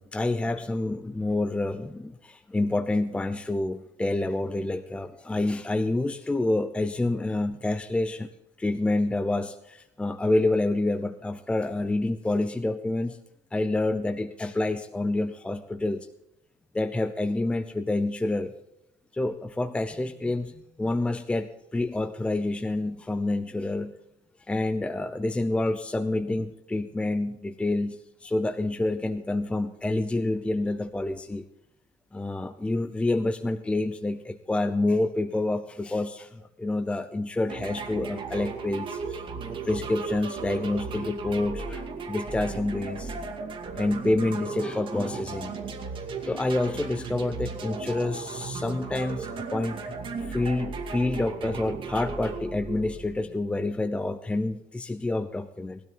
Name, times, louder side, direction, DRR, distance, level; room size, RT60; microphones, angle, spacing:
voice 1, 0.0-8.3 8.6-13.2 13.5-16.1 16.7-18.5 19.1-23.9 24.5-31.4 32.1-39.2 39.6-43.1 43.8-45.6 46.2-49.9 50.2-55.8, left 2 dB, 10° left, 9 dB, 0.6 m, -28 dB
sound 1, 37.5-53.4, right 4 dB, 40° right, 2.4 m, -36 dB
19.5 x 12.5 x 3.9 m, 0.86 s
cardioid pair, 140°, 13 cm